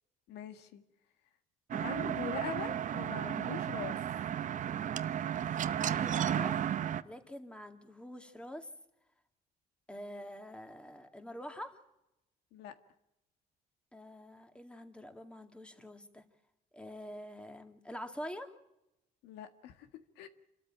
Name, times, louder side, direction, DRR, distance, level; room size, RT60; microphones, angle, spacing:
voice 1, 0.3-0.8 1.7-4.0 12.5-12.8 19.2-19.9 20.2-20.3, left 10 dB, 85° left, 9 dB, 1.8 m, -43 dB
sound 1, 1.7-7.0, right 9 dB, 50° right, 0.8 m, -33 dB
voice 2, 5.7-6.6 7.0-8.7 9.9-11.8 13.9-16.2 16.7-18.6, equal, 5° left, 6 dB, 2.3 m, -46 dB
28.0 x 13.5 x 8.8 m, 0.89 s
cardioid pair, 110°, 17 cm